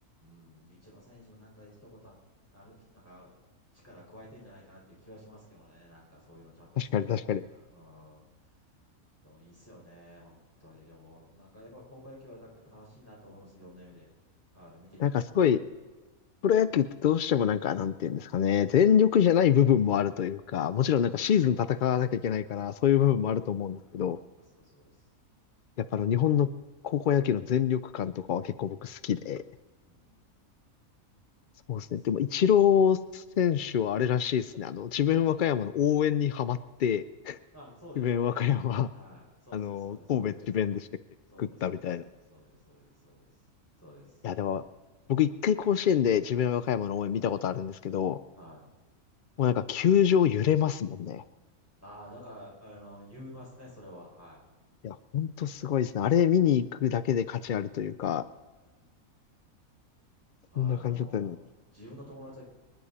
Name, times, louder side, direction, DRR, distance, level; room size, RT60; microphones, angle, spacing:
voice 1, 0.2-2.1 2.5-3.3 3.8-8.2 9.2-14.1 14.5-15.2 20.8-21.4 24.6-25.0 29.9-30.2 37.5-38.4 38.9-40.4 41.3-43.3 43.8-44.2 48.3-48.6 51.8-54.4 58.8-58.9 60.5-62.4, equal, 10° left, -5 dB, 5.3 m, -51 dB
voice 2, 6.8-7.4 15.0-15.6 16.4-24.2 25.9-26.5 26.8-29.4 31.7-37.4 38.0-38.9 39.5-40.9 41.4-42.0 44.2-44.6 45.1-48.2 49.4-51.2 54.8-58.2 60.6-61.4, left 9 dB, 85° left, 14 dB, 0.4 m, -26 dB
24.5 x 10.5 x 4.2 m, 1.2 s
omnidirectional pair, 1.5 m